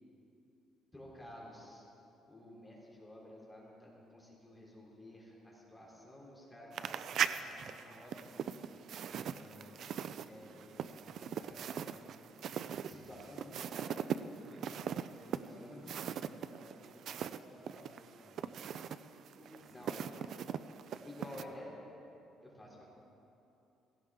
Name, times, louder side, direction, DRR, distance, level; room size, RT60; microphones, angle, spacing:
voice 1, 0.9-1.8 2.3-8.8 9.1-10.7 11.0-11.7 12.8-14.8 15.3-16.3 19.6-20.1 21.0-21.7 22.4-22.8, left 1 dB, 10° left, -4 dB, 3.3 m, -53 dB
sound 1, 6.7-17.4 17.7-21.4, right 8 dB, 55° right, 0.4 m, -40 dB
voice 2, 9.2-10.0 10.6-10.9 11.1-12.2 15.1-15.8 16.3-17.1 17.3-19.0 19.4-20.3 21.0-21.8, equal, 15° right, -6 dB, 2.1 m, -58 dB
17.0 x 16.5 x 3.7 m, 2.9 s
cardioid pair, 155°, 0 cm